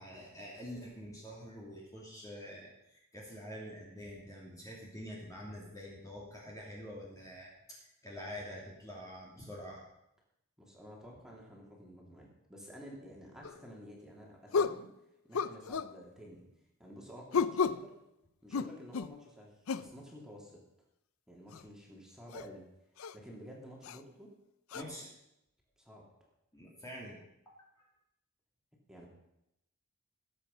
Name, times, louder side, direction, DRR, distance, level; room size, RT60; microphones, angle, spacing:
voice 1, 0.0-9.8 24.7-25.1 26.5-27.2 27.5-27.9, equal, 15° left, -4 dB, 2.8 m, -46 dB
voice 2, 10.6-14.9 15.3-16.5 16.8-17.9 18.4-20.6 21.3-22.7 23.1-24.3 24.7-24.9 25.8-26.0 28.9-29.1, equal, 5° right, -3 dB, 3.2 m, -51 dB
sound 1, 13.4-13.6 14.5-14.8 15.3-15.9 17.3-17.9 18.5-19.2 19.7-19.9 21.5-21.6 22.3-22.5 23.0-23.1 23.8-24.0 24.7-24.8, left 5 dB, 75° left, 0.5 m, -32 dB
19.5 x 8.2 x 5.6 m, 0.83 s
head